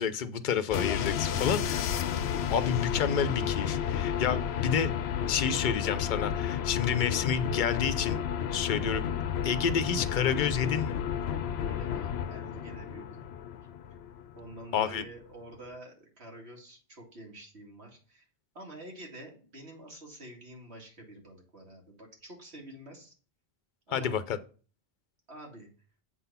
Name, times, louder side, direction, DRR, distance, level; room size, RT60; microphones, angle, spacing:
voice 1, 0.0-4.9 5.3-8.2 8.5-9.0 9.4-11.0 14.7-15.0 23.9-24.4, left 7 dB, 55° left, 13 dB, 0.7 m, -29 dB
sound 1, 0.7-14.6, left 8 dB, 80° left, 0.8 m, -32 dB
voice 2, 11.6-13.2 14.3-18.2 18.5-23.1 23.9-24.2 25.3-25.7, right 1 dB, 80° right, 0 dB, 2.7 m, -48 dB
8.0 x 4.0 x 5.6 m, 0.38 s
omnidirectional pair, 1.1 m